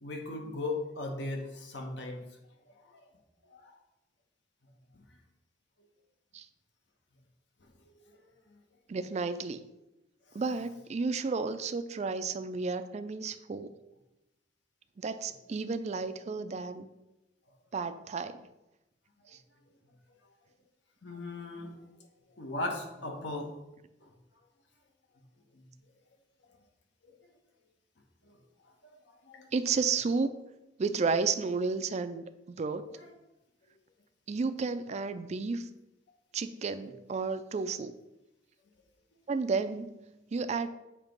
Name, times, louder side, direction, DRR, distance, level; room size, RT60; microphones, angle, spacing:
voice 1, 0.0-2.2 2.9-3.0 3.5-3.7 21.0-21.7 22.4-23.5 24.0-24.1 29.3-29.5 34.9-35.0, left 2 dB, 70° left, 2 dB, 1.1 m, -37 dB
voice 2, 8.9-9.6 10.3-13.8 15.0-16.9 17.7-18.4 29.5-30.3 30.8-32.9 34.3-35.7 36.3-37.9 39.3-40.7, right 4 dB, 35° right, 11 dB, 0.3 m, -32 dB
7.2 x 2.9 x 5.2 m, 0.96 s
head